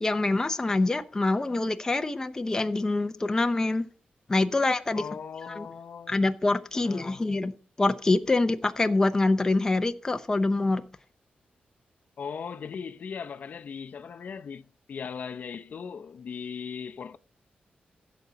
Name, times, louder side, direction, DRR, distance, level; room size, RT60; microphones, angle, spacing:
voice 1, 0.0-3.9 4.3-5.0 5.6-5.7 6.1-7.5 7.8-10.8, left 2 dB, 20° left, 0.6 m, -25 dB
voice 2, 4.9-6.2 6.7-7.2 12.2-17.2, left 6 dB, 55° left, 0.6 m, -38 dB
16.0 x 6.9 x 3.9 m
wide cardioid pair, 170°, 3 cm